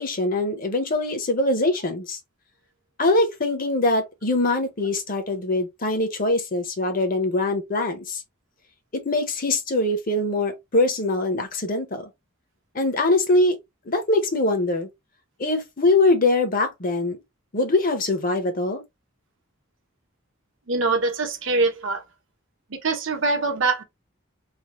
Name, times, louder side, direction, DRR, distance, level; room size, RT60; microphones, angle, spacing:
voice 1, 0.0-2.2 3.0-8.2 8.9-12.1 12.7-13.6 13.9-14.9 15.4-17.2 17.5-18.8, left 2 dB, 40° left, 0.7 m, -23 dB
voice 2, 20.7-22.0 22.7-23.8, right 3 dB, 65° right, 0.9 m, -23 dB
3.3 x 2.0 x 2.9 m
head